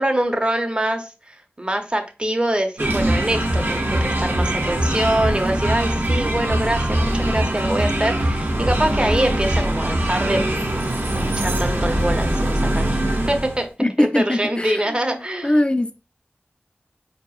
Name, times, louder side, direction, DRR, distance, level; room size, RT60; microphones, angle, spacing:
voice 1, 0.0-10.4 11.2-13.7 14.0-15.7, right 1 dB, 25° right, 0.6 m, -24 dB
sound 1, 2.8-13.6, right 1 dB, 70° right, 0.7 m, -22 dB
voice 2, 13.8-16.0, left 1 dB, 25° left, 0.4 m, -22 dB
4.4 x 2.8 x 2.3 m
wide cardioid pair, 50°, 4 cm